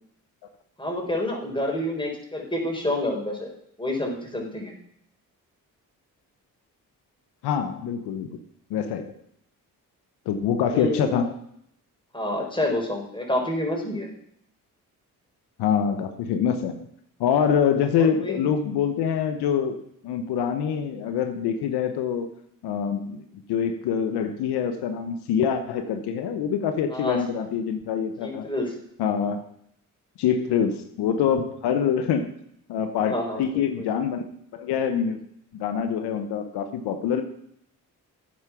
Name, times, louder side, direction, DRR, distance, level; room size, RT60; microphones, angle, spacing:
voice 1, 0.8-3.5 3.8-4.8 10.7-11.2 12.1-14.1 18.0-18.4 26.9-27.5 28.2-28.7 33.0-33.9, left 1 dB, 10° left, 0 dB, 4.1 m, -28 dB
voice 2, 7.4-8.3 8.7-9.1 10.3-11.3 15.6-16.7 17.2-22.3 22.6-28.5 29.0-29.4 30.2-32.3 32.7-34.3 34.5-35.2 35.5-37.2, left 7 dB, 85° left, 8 dB, 0.9 m, -25 dB
8.9 x 7.3 x 5.8 m, 0.71 s
supercardioid pair, 50°, 38 cm